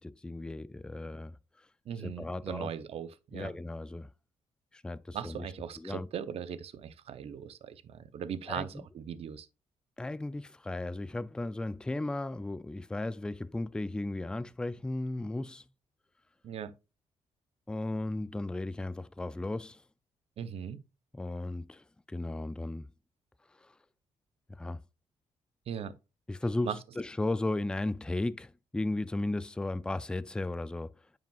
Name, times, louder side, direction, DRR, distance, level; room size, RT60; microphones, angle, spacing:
voice 1, 0.0-1.7 2.0-2.7 3.3-4.1 4.7-5.5 5.8-6.1 8.5-8.7 10.0-15.6 17.7-19.8 21.1-22.9 23.6-23.7 24.5-24.8 26.3-31.0, left 2 dB, 5° left, 0.3 m, -35 dB
voice 2, 1.9-3.5 5.1-9.5 16.4-16.7 20.4-20.8 25.7-25.9 26.6-26.8, right 8 dB, 60° right, 0.7 m, -39 dB
9.2 x 5.0 x 2.4 m
cardioid pair, 90°, 11 cm